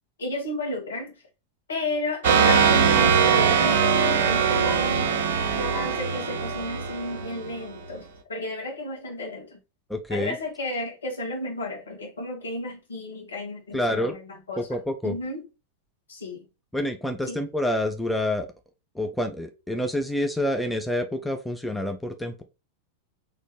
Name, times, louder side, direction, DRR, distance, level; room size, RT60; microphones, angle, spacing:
voice 1, 0.2-1.2 1.7-3.9 4.2-5.2 5.5-9.6 10.1-14.7 15.0-15.4 16.1-16.4 17.3-17.4, left 1 dB, 70° left, 1.6 m, -32 dB
sound 1, 2.2-7.7, right 6 dB, 55° right, 0.7 m, -21 dB
voice 2, 9.9-10.4 13.7-14.2 14.6-15.2 16.7-18.5 18.9-22.4, left 1 dB, ahead, 0.6 m, -27 dB
4.1 x 3.1 x 3.2 m
figure-of-eight pair, 90°, 0 cm